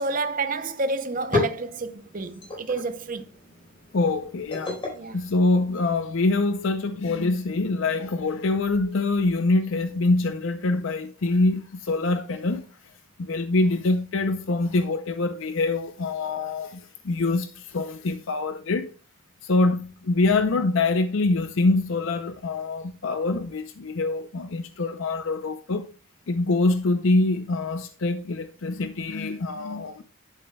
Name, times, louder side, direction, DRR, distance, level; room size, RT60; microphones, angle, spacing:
voice 1, 0.0-3.2 4.9-5.2, right 3 dB, 40° right, 0.7 m, -29 dB
sound 1, 1.0-6.2, left 3 dB, 25° left, 4.4 m, -34 dB
voice 2, 3.9-4.8 5.1-12.7 13.2-18.9 19.4-25.9 26.3-30.0, left 2 dB, 60° left, 0.5 m, -24 dB
10.5 x 8.2 x 2.2 m
head